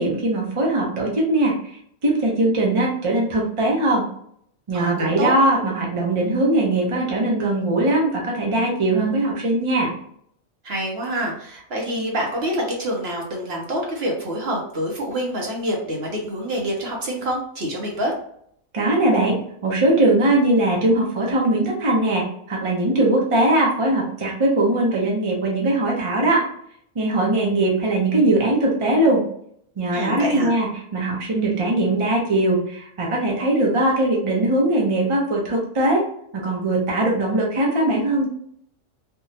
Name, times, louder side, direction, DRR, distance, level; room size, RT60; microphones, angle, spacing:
voice 1, 0.0-4.1 4.7-9.9 18.7-26.4 26.9-29.2 29.8-36.0 36.3-38.3, right 2 dB, 30° right, -2 dB, 0.7 m, -20 dB
voice 2, 4.7-5.3 10.6-18.1 29.9-30.6, equal, 55° right, -1 dB, 1.0 m, -26 dB
3.5 x 2.3 x 2.7 m, 0.67 s
omnidirectional pair, 1.4 m